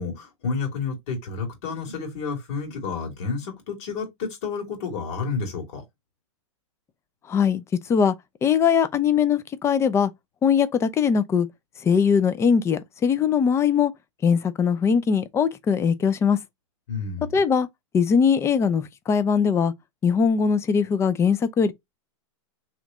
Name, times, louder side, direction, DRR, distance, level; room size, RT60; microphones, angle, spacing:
voice 1, 0.0-5.8 16.9-17.4, left 5 dB, 60° left, 2.3 m, -30 dB
voice 2, 7.3-7.6 7.9-8.1 8.4-10.1 10.4-11.5 11.8-13.9 14.2-16.4 17.3-17.7 17.9-19.7 20.0-21.7, left 6 dB, 15° left, 0.4 m, -21 dB
3.1 x 3.1 x 3.6 m
hypercardioid pair, 130°, 16 cm